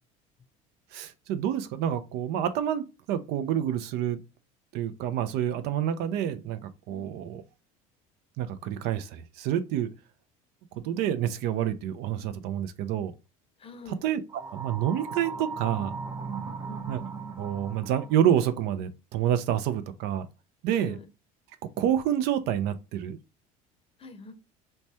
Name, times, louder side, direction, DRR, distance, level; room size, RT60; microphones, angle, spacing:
voice 1, 0.9-4.2 4.7-6.6 6.9-7.4 8.4-9.9 10.8-13.1 14.0-14.2 14.5-16.0 16.9-17.0 17.4-20.3 20.6-20.9 21.8-23.2, right 10 dB, 65° right, 0.5 m, -28 dB
voice 2, 13.6-14.0 16.4-16.9 20.7-21.0 24.0-24.3, left 3 dB, 30° left, 0.7 m, -45 dB
sound 1, 14.3-18.3, right 5 dB, 15° right, 0.5 m, -37 dB
3.1 x 2.2 x 2.6 m
hypercardioid pair, 80°, 18 cm